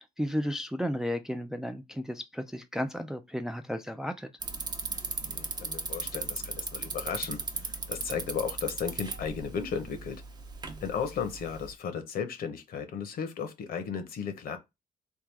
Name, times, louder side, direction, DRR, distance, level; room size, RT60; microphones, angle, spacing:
voice 1, 0.0-4.3, equal, 5° right, 0.3 m, -33 dB
Bicycle, 4.4-11.7, right 3 dB, 25° right, 0.7 m, -37 dB
voice 2, 5.3-10.2 10.8-14.6, left 6 dB, 70° left, 0.8 m, -35 dB
3.6 x 2.3 x 4.5 m
cardioid pair, 130°, 16 cm